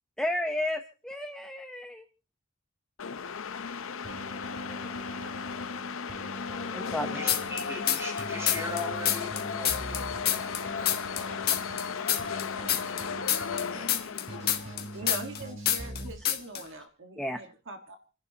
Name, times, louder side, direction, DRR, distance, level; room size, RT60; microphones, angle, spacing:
voice 1, 0.2-2.1 6.7-7.2 17.2-17.4, left 1 dB, 5° left, 0.8 m, -32 dB
sound 1, 3.0-15.3, left 6 dB, 65° left, 0.6 m, -36 dB
Keyboard (musical), 4.0-16.1, right 1 dB, 35° right, 3.9 m, -43 dB
voice 2, 7.1-11.4 12.1-13.9, left 1 dB, 15° right, 5.8 m, -41 dB
sound 2, 7.3-8.2 8.5-11.2 11.5-15.4 15.7-16.0 16.3-16.6, left 11 dB, 45° left, 1.5 m, -27 dB
voice 3, 14.9-18.0, right 2 dB, 60° right, 1.6 m, -41 dB
29.5 x 11.0 x 2.8 m
head